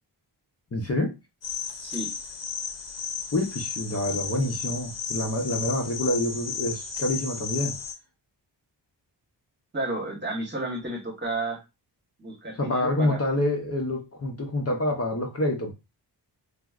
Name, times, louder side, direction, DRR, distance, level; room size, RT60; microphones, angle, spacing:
voice 1, 0.7-1.1 3.3-7.7 12.6-15.7, left 1 dB, 35° left, 1 dB, 0.6 m, -27 dB
sound 1, 1.4-7.9, left 6 dB, 75° left, 0.7 m, -34 dB
voice 2, 1.8-2.1 9.7-11.6 12.2-13.2, right 2 dB, 25° right, -1 dB, 1.1 m, -31 dB
4.6 x 2.0 x 2.3 m, 0.25 s
wide cardioid pair, 125°, 43 cm